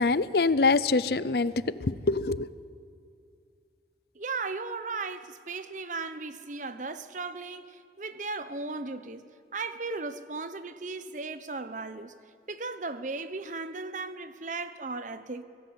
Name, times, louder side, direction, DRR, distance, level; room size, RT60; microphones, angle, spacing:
voice 1, 0.0-1.5 1.8-2.5, left 3 dB, 60° left, 0.6 m, -24 dB
voice 2, 4.1-12.1 12.5-15.4, right 3 dB, 45° right, 1.0 m, -36 dB
27.5 x 18.5 x 8.2 m
head